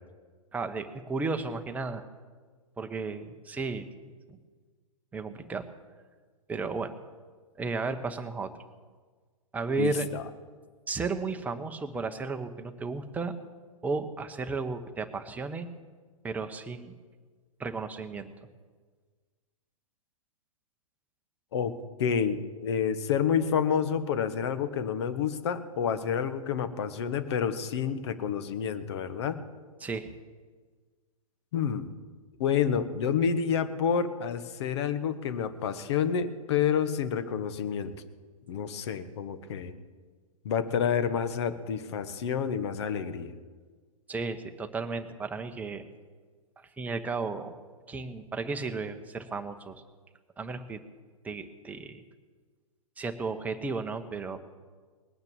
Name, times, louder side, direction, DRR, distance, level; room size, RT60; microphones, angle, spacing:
voice 1, 0.5-2.0 2.8-4.4 5.1-5.7 6.5-6.9 7.6-8.5 9.5-10.1 10.9-13.3 13.8-15.7 16.2-16.9 17.6-18.3 29.8-30.1 44.1-45.8 46.6-47.5 47.9-49.8 50.4-50.8 51.2-52.0 53.0-54.4, right 4 dB, 10° right, 6 dB, 1.0 m, -34 dB
voice 2, 9.8-10.2 21.5-21.7 22.0-29.4 31.5-31.9 32.4-37.9 38.5-39.7 40.4-43.3, left 7 dB, 50° left, 11 dB, 1.3 m, -29 dB
20.0 x 9.4 x 7.3 m, 1.5 s
figure-of-eight pair, 110°, 18 cm